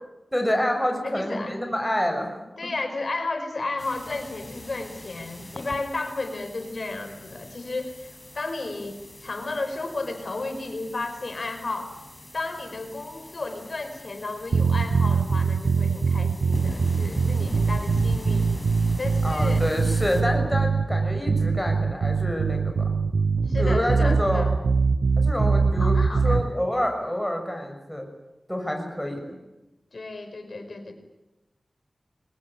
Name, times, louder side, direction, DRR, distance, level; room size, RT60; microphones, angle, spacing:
voice 1, 0.3-2.7 19.2-23.0 23.6-24.5 25.2-26.0 26.2-28.1 28.5-29.4, equal, 5° left, 3 dB, 6.2 m, -27 dB
voice 2, 1.0-1.5 2.6-12.0 12.3-18.5 19.0-19.7 23.5-24.5 25.8-26.4 29.9-30.9, left 3 dB, 65° left, 8 dB, 4.8 m, -33 dB
sound 1, 3.8-20.2, left 1 dB, 25° left, 5.4 m, -40 dB
sound 2, 14.5-26.5, right 4 dB, 75° right, 0.9 m, -23 dB
23.5 x 19.0 x 10.0 m, 0.97 s
cardioid pair, 40°, 0 cm